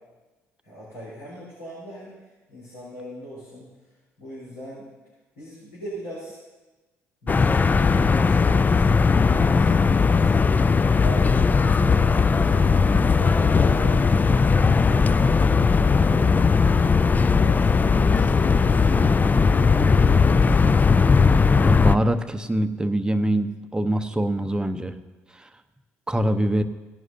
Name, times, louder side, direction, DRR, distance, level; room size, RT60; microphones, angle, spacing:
voice 1, 0.6-3.7 4.2-4.9 5.4-6.4 7.2-10.7 11.0-16.7 17.4-20.6, equal, 80° left, -9 dB, 4.1 m, -39 dB
sound 1, 7.3-22.0, left 5 dB, 25° left, 0.4 m, -18 dB
voice 2, 21.6-24.9 26.1-26.6, right 1 dB, 10° right, 9 dB, 0.7 m, -24 dB
17.5 x 11.0 x 2.7 m, 1.2 s
figure-of-eight pair, 50°, 7 cm